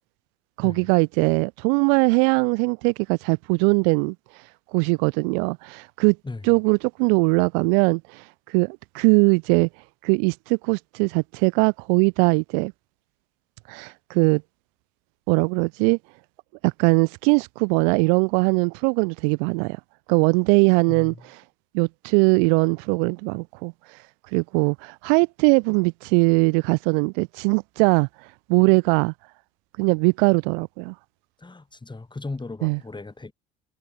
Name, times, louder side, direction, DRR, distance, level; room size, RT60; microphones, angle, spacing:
voice 1, 0.6-4.1 4.7-6.2 6.4-9.7 10.0-12.7 13.7-14.4 15.3-16.0 16.6-19.8 20.1-21.1 21.7-23.7 24.3-28.1 28.5-29.1 29.8-30.9 32.6-32.8, right 40 dB or more, 60° right, 0.7 m, -21 dB
voice 2, 20.9-21.2 31.4-33.3, left 3 dB, 15° left, 4.6 m, -36 dB
figure-of-eight pair, 60°, 31 cm